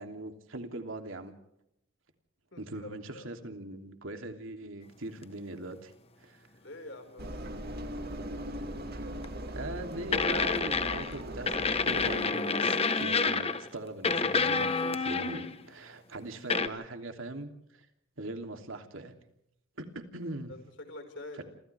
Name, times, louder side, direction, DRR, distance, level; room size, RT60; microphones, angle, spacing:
voice 1, 0.0-1.3 2.6-5.9 6.2-6.5 9.5-17.9 18.2-19.1 19.8-20.5 21.3-21.4, right 2 dB, 85° right, 5 dB, 3.1 m, -41 dB
voice 2, 2.5-3.3 6.5-7.5 20.5-21.4, left 1 dB, 65° left, 6 dB, 5.2 m, -46 dB
Engine, 7.2-12.2, right 1 dB, 50° right, 2.6 m, -39 dB
sound 1, 9.2-9.4 10.1-11.2 11.5-13.7 14.0-15.6 16.5-16.7, left 4 dB, 30° left, 1.2 m, -28 dB
29.0 x 27.0 x 3.5 m, 0.79 s
head